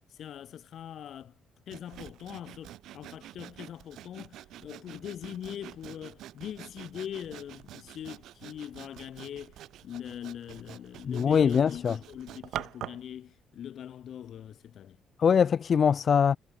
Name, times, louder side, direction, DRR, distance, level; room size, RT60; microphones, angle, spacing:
voice 1, 0.1-1.4 1.7-9.6 9.8-15.0, left 10 dB, 65° left, 3.5 m, -42 dB
Sawing, 1.7-13.1, right 13 dB, 80° right, 4.5 m, -46 dB
voice 2, 11.1-12.0 15.2-16.4, left 7 dB, 50° left, 1.0 m, -23 dB
cardioid pair, 90°, 0 cm